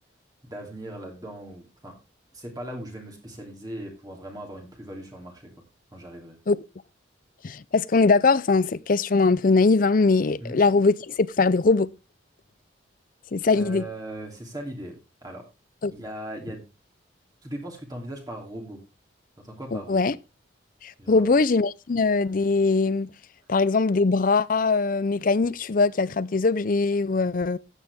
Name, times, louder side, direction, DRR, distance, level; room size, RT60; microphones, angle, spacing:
voice 1, 0.4-1.9 2.3-5.5 5.9-6.4 10.4-10.6 13.5-15.4 15.9-16.7 17.4-18.8 19.4-20.1 21.0-21.3, right 1 dB, 20° right, 2.8 m, -39 dB
voice 2, 7.4-11.9 13.3-13.8 15.8-15.9 19.7-20.1 20.8-23.1 23.5-27.6, left 3 dB, 45° left, 0.5 m, -21 dB
13.5 x 9.1 x 3.5 m
head